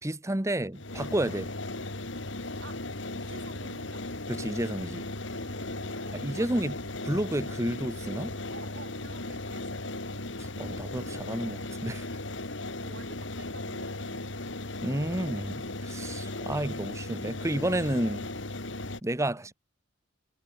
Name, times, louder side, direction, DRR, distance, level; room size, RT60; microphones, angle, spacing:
voice 1, 0.0-1.5 4.3-5.1 6.1-6.7 7.1-8.3 10.6-12.1 14.8-18.3 19.0-19.5, right 1 dB, 15° right, 1.0 m, -31 dB
sound 1, 0.7-19.0, left 2 dB, 70° left, 3.4 m, -37 dB
voice 2, 2.6-4.1 5.3-6.6 8.5-10.2 12.8-14.6 14.9-15.1 19.3-19.5, right 2 dB, 65° right, 6.4 m, -51 dB
head